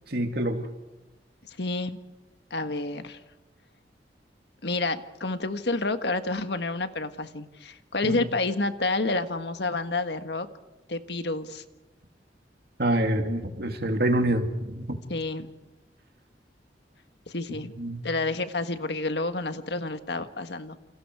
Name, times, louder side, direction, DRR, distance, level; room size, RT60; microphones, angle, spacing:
voice 1, 0.1-0.6 8.0-8.2 12.8-15.0 17.8-18.0, right 1 dB, 60° right, 5 dB, 2.7 m, -26 dB
voice 2, 1.6-2.0 2.5-3.2 4.6-10.5 10.9-11.6 15.1-15.5 17.3-17.7 18.0-20.8, left 2 dB, 70° left, 9 dB, 1.5 m, -29 dB
29.0 x 29.0 x 4.8 m, 1.1 s
head